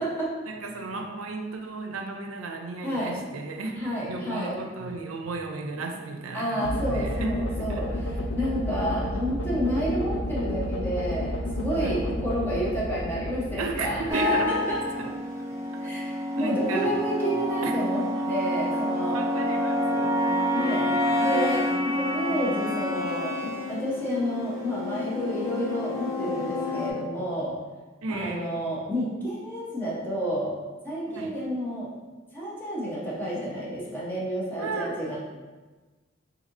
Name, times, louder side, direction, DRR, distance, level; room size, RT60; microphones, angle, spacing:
voice 1, 0.5-8.0 11.7-12.0 13.6-14.5 14.9-15.1 15.5-16.0 16.4-16.9 17.4-17.7 18.0-18.1 19.1-20.5 21.1-21.2 28.0-28.5 31.1-31.3 34.6-34.9, right 3 dB, 90° right, 3 dB, 0.5 m, -34 dB
voice 2, 2.8-3.2 3.8-4.6 6.3-14.8 15.8-19.2 20.5-20.9 21.2-27.5 28.1-30.5 30.8-31.9 32.3-35.2, equal, 10° left, -7 dB, 0.9 m, -30 dB
sound 1, 6.6-14.8, equal, 65° left, 0.5 m, -31 dB
sound 2, 14.1-26.9, left 1 dB, 15° right, 0.5 m, -28 dB
4.2 x 2.8 x 2.6 m, 1.3 s
head